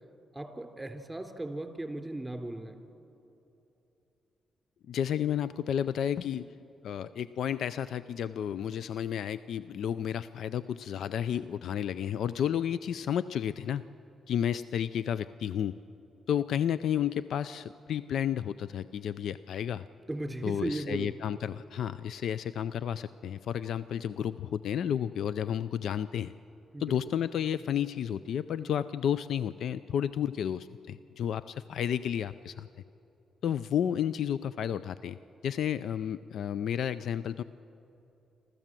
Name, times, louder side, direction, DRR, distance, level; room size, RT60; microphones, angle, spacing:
voice 1, 0.3-2.8 20.1-21.1 26.7-27.0, right 1 dB, 15° right, 4 dB, 3.5 m, -36 dB
voice 2, 4.9-6.5 6.8-13.8 14.3-15.8 16.3-19.8 20.4-26.3 26.8-32.7 33.4-35.2 35.4-37.4, left 9 dB, 75° left, 15 dB, 0.4 m, -31 dB
28.0 x 13.5 x 7.6 m, 2.9 s
supercardioid pair, 50°, 0 cm